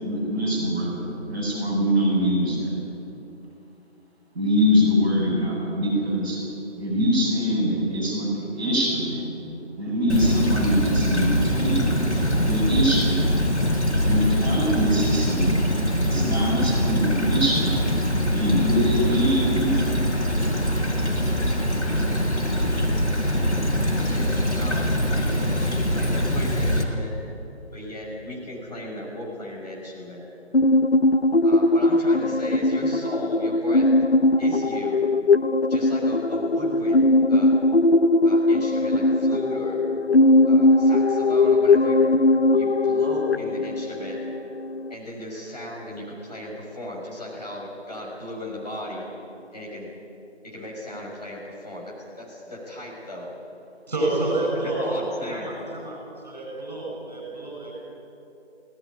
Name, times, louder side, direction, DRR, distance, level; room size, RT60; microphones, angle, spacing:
voice 1, 0.0-2.7 4.3-6.4 6.8-9.3 9.8-12.0 12.4-13.3 14.0-15.7 16.0-17.9 18.3-19.8, equal, 10° right, -12 dB, 7.0 m, -23 dB
Stream / Trickle dribble, 10.1-26.8, equal, 80° left, 4.9 m, -23 dB
voice 2, 23.7-27.1 27.7-30.2 31.4-33.9 34.4-35.0 35.7-37.0 37.3-37.6 38.2-39.8 40.4-42.0 42.5-44.2 44.9-49.1 49.5-49.9 50.4-53.3 54.0-54.1 54.6-55.6, left 1 dB, 35° left, -4 dB, 6.0 m, -36 dB
sound 1, 30.5-44.9, left 2 dB, 60° left, 0.8 m, -20 dB
voice 3, 53.9-57.7, right 2 dB, 35° right, -2 dB, 7.0 m, -28 dB
19.5 x 18.0 x 9.8 m, 2.8 s
figure-of-eight pair, 165°, 35 cm